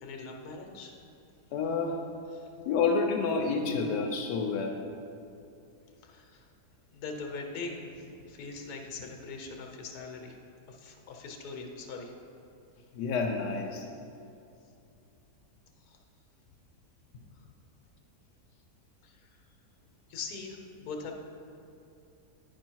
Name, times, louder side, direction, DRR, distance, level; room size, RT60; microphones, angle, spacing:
voice 1, 0.0-1.0 2.3-2.5 6.0-6.5 6.9-10.4 10.7-12.1 15.8-16.0 17.3-17.5 19.0-19.4 20.1-21.1, left 4 dB, 70° left, 2 dB, 1.3 m, -42 dB
voice 2, 1.5-2.0 2.7-4.8 12.9-13.9, left 4 dB, 85° left, 2 dB, 1.2 m, -29 dB
9.8 x 4.9 x 4.5 m, 2.6 s
omnidirectional pair, 1.8 m